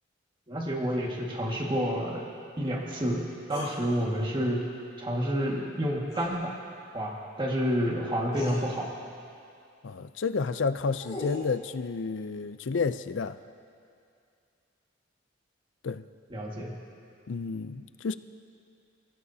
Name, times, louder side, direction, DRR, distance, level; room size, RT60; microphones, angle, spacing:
voice 1, 0.5-2.2 2.6-4.7 5.0-6.6 6.9-8.9 16.3-16.8, equal, 25° right, -2 dB, 1.8 m, -29 dB
sound 1, 3.5-3.8 6.1-6.4 7.7-7.8 8.3-8.6 10.6-11.5, left 2 dB, 20° left, 4.8 m, -39 dB
voice 2, 9.8-13.4 15.8-16.0 17.3-18.1, left 4 dB, 70° left, 12 dB, 0.5 m, -30 dB
29.0 x 16.0 x 2.8 m, 2.4 s
head